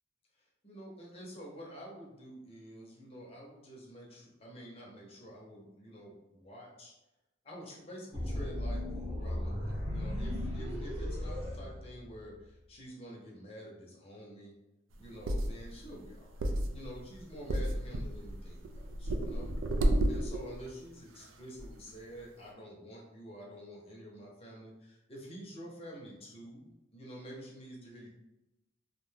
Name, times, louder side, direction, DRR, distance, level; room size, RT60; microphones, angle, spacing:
voice 1, 0.4-6.9 7.4-14.5 15.0-19.5 20.1-28.1, equal, 30° left, -2 dB, 0.6 m, -48 dB
sound 1, 8.1-12.4, left 1 dB, 30° right, 0.9 m, -36 dB
sound 2, 14.9-20.7 21.2-21.3 21.6-21.7, right 1 dB, 80° right, 0.3 m, -32 dB
2.5 x 2.2 x 3.2 m, 0.95 s
head